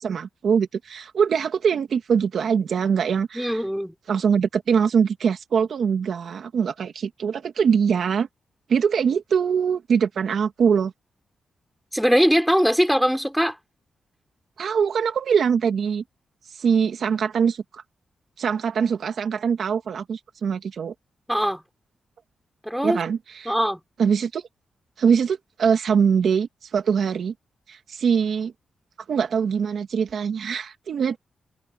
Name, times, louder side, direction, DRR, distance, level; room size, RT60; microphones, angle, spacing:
voice 1, 0.0-3.6 4.1-8.3 8.7-10.9 14.6-16.0 16.5-17.8 18.4-20.9 22.8-23.5 24.0-24.4 25.0-27.3 27.7-28.5 29.1-31.2, right 6 dB, 65° right, 2.2 m, -23 dB
voice 2, 3.3-3.9 11.9-13.6 21.3-21.6 22.6-23.0 23.4-23.8, equal, ahead, 4.6 m, -21 dB
cardioid pair, 115°, 0 cm